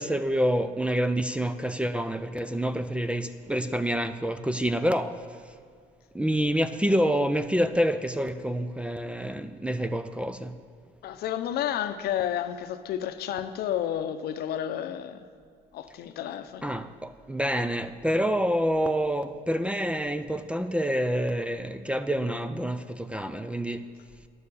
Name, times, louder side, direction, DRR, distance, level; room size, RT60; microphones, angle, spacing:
voice 1, 0.0-5.2 6.1-10.5 16.6-23.8, equal, 5° right, 0.4 m, -27 dB
voice 2, 11.0-15.3 15.7-16.6, left 10 dB, 70° left, 0.7 m, -31 dB
10.5 x 6.8 x 7.0 m
cardioid pair, 110°, 17 cm